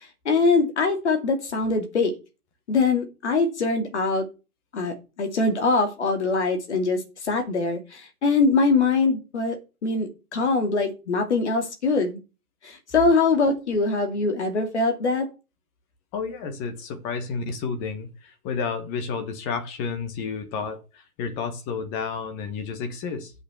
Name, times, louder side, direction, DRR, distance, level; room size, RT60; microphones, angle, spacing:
voice 1, 0.2-2.2 2.7-4.3 4.7-12.2 12.6-15.3, left 3 dB, 50° left, 2.9 m, -23 dB
voice 2, 16.1-23.3, left 5 dB, 15° left, 1.0 m, -31 dB
8.1 x 6.7 x 6.6 m
figure-of-eight pair, 145°, 44 cm